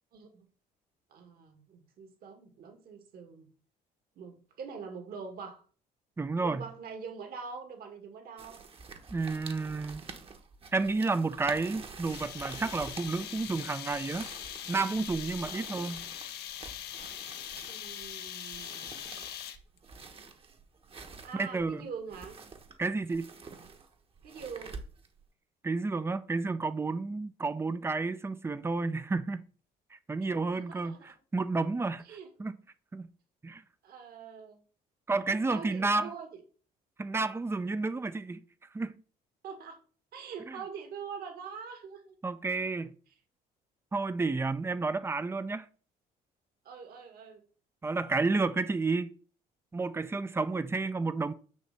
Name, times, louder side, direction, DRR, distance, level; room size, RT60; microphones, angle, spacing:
voice 1, 0.1-0.5 1.1-3.5 4.2-5.6 6.4-8.7 17.6-18.9 21.2-22.4 24.2-24.8 30.2-31.1 32.0-32.3 33.8-34.6 35.5-36.4 39.4-39.8 40.1-42.2 46.6-47.4, right 6 dB, 60° right, 2.1 m, -44 dB
voice 2, 6.2-6.6 9.1-10.0 10.7-14.3 14.7-16.0 21.3-21.8 22.8-23.3 25.6-29.4 30.1-32.0 32.4-32.6 32.9-33.1 33.4-33.6 35.1-36.1 37.0-38.4 38.7-38.9 40.5-40.6 42.2-42.9 43.9-45.7 47.8-49.1 49.7-51.3, right 3 dB, 15° right, 0.6 m, -31 dB
sound 1, 8.4-25.3, right 4 dB, 35° right, 1.2 m, -47 dB
sound 2, 12.1-19.8, left 10 dB, 75° left, 1.0 m, -42 dB
9.4 x 3.2 x 6.8 m
cardioid pair, 110°, 17 cm